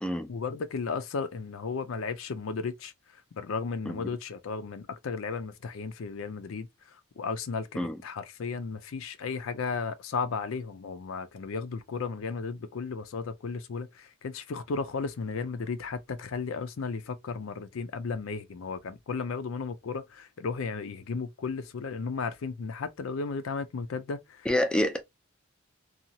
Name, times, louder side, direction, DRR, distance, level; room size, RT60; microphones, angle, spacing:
voice 1, 0.3-2.9 3.3-6.7 7.2-24.4, left 4 dB, 70° left, 0.4 m, -34 dB
voice 2, 24.5-25.0, left 1 dB, 5° left, 0.4 m, -27 dB
2.8 x 2.3 x 2.7 m
head